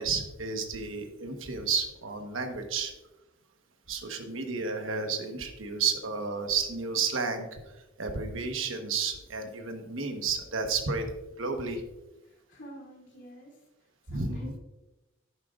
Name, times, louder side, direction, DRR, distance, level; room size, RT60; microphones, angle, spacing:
voice 1, 0.0-2.9 3.9-11.1 11.4-11.8 14.1-14.5, right 5 dB, 70° right, 5 dB, 1.2 m, -32 dB
voice 2, 12.2-13.6 14.1-14.6, right 1 dB, 60° left, -3 dB, 2.4 m, -49 dB
11.5 x 9.3 x 2.5 m, 1.0 s
head